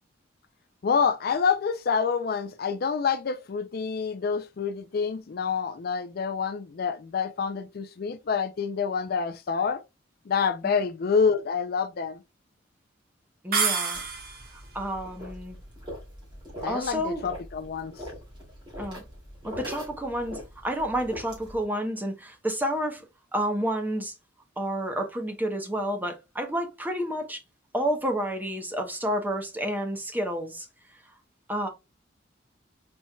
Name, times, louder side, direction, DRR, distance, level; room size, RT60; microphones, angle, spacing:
voice 1, 0.8-9.8 10.3-12.2 16.6-17.9, left 6 dB, 50° left, 0.4 m, -27 dB
voice 2, 13.4-14.0 14.7-15.6 16.7-17.2 18.8-19.0 19.4-23.0 23.3-24.1 24.6-27.4 27.7-30.7 31.5-31.7, equal, 10° right, 0.9 m, -30 dB
sound 1, 13.5-14.6, right 5 dB, 50° right, 1.2 m, -27 dB
sound 2, 13.9-21.6, equal, 25° right, 2.5 m, -42 dB
4.4 x 4.3 x 2.3 m
head